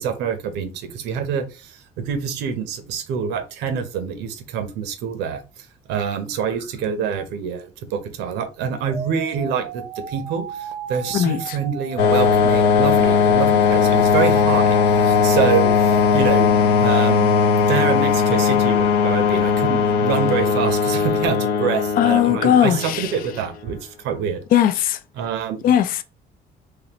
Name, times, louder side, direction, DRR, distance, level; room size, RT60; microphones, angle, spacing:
voice 1, 0.0-16.5 16.8-17.3 17.7-24.4 25.2-25.8, right 7 dB, 90° right, 0.8 m, -26 dB
sound 1, 8.9-16.2, right 6 dB, 50° right, 0.6 m, -34 dB
voice 2, 11.1-11.6 22.0-23.1 24.5-25.0 25.6-26.0, left 10 dB, 60° left, 0.4 m, -18 dB
sound 2, 12.0-23.4, left 6 dB, 85° left, 0.7 m, -18 dB
3.8 x 3.1 x 2.9 m
cardioid pair, 110°, 17 cm